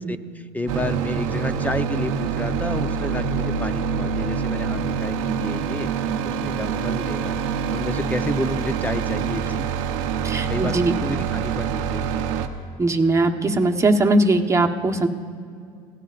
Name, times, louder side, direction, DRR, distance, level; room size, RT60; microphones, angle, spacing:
voice 1, 0.0-7.4 7.7-9.6 10.5-12.3, left 1 dB, 10° left, 10 dB, 0.7 m, -31 dB
sound 1, 0.7-12.5, right 6 dB, 90° right, 0.9 m, -25 dB
voice 2, 10.2-10.9 12.8-15.1, right 2 dB, 20° right, 2 dB, 1.2 m, -20 dB
29.5 x 17.0 x 2.5 m, 2.3 s
supercardioid pair, 85°, 16 cm